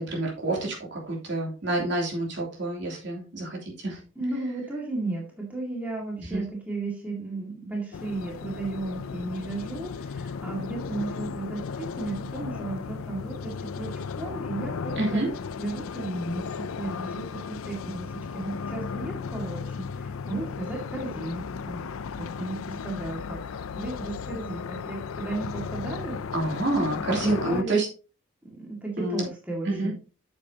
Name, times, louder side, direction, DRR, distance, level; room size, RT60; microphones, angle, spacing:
voice 1, 0.0-4.0 6.2-6.4 15.0-15.3 26.3-27.9 29.0-29.2 29.6-29.9, right 2 dB, 55° right, -2 dB, 3.1 m, -28 dB
voice 2, 4.2-15.2 15.6-21.8 22.2-23.4 23.7-26.2 26.9-27.8 28.4-29.9, right 2 dB, 5° right, -2 dB, 2.1 m, -34 dB
sound 1, 7.9-27.6, left 5 dB, 85° left, 0.5 m, -35 dB
8.8 x 7.4 x 2.9 m, 0.35 s
head